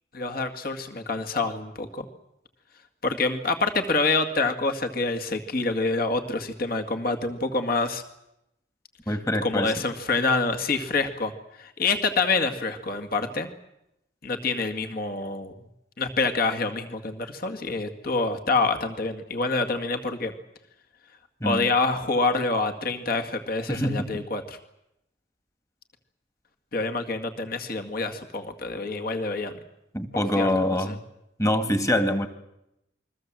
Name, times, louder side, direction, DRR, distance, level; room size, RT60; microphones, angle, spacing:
voice 1, 0.1-2.1 3.0-8.0 9.1-9.2 9.4-11.3 11.6-13.5 14.2-15.5 16.0-20.3 21.4-24.6 26.7-29.5 30.4-30.5 30.9-31.0, left 3 dB, 50° left, 5 dB, 2.1 m, -26 dB
voice 2, 9.1-9.9 21.4-21.7 23.7-24.1 29.9-31.0 31.4-32.3, left 1 dB, 15° left, 8 dB, 1.8 m, -25 dB
28.0 x 22.0 x 7.6 m, 0.85 s
head